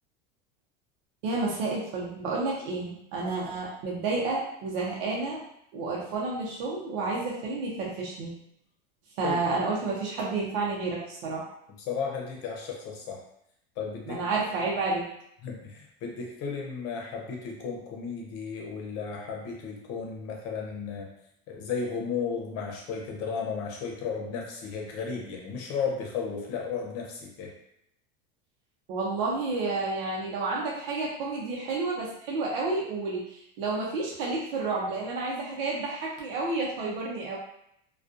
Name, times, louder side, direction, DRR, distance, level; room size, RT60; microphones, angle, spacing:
voice 1, 1.2-5.4 5.7-8.3 9.2-11.5 14.1-15.1 28.9-37.4, right 3 dB, 70° right, -4 dB, 0.8 m, -30 dB
voice 2, 11.9-13.2 13.8-14.2 15.4-21.1 21.5-27.5, left 5 dB, 55° left, 0 dB, 0.8 m, -34 dB
2.4 x 2.3 x 2.5 m, 0.74 s
supercardioid pair, 120°, 29 cm